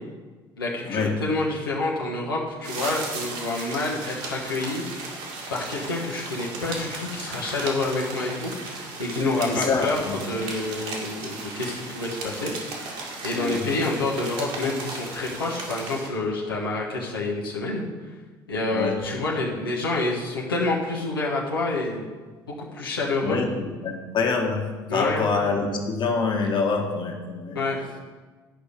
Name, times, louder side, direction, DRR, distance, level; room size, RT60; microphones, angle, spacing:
voice 1, 0.6-4.8 5.5-12.8 13.2-17.9 18.5-22.1 22.6-23.4 24.9-25.3 27.5-28.0, left 2 dB, 85° left, -4 dB, 1.2 m, -28 dB
sound 1, 2.6-16.1, right 3 dB, 65° right, 2.0 m, -36 dB
voice 2, 9.5-10.2 13.3-13.7 18.7-19.0 23.2-23.5 23.8-27.6, left 4 dB, 40° left, 1 dB, 1.5 m, -26 dB
10.5 x 5.4 x 5.1 m, 1.4 s
figure-of-eight pair, 60°, 12 cm